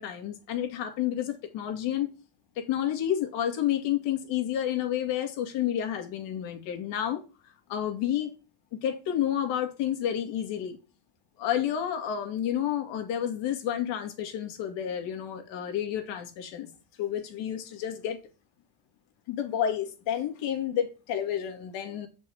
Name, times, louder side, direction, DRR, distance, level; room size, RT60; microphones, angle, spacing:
voice 1, 0.0-2.1 2.6-8.3 8.7-10.8 11.4-16.7 17.0-18.2 19.3-22.1, left 10 dB, 80° left, 2.6 m, -30 dB
7.3 x 6.2 x 6.0 m
supercardioid pair, 90°, 43 cm